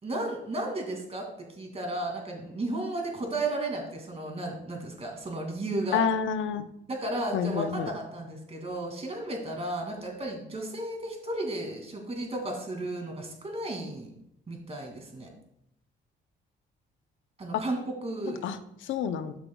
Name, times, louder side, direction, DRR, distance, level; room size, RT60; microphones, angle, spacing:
voice 1, 0.0-1.3 1.6-6.0 6.9-14.1 14.5-15.3 17.4-18.4, right 2 dB, 30° right, 2 dB, 2.4 m, -34 dB
voice 2, 5.9-6.7 7.3-7.9 17.5-17.6 18.4-19.4, left 7 dB, 80° left, 10 dB, 0.7 m, -29 dB
12.5 x 6.1 x 2.3 m, 0.77 s
cardioid pair, 90°, 20 cm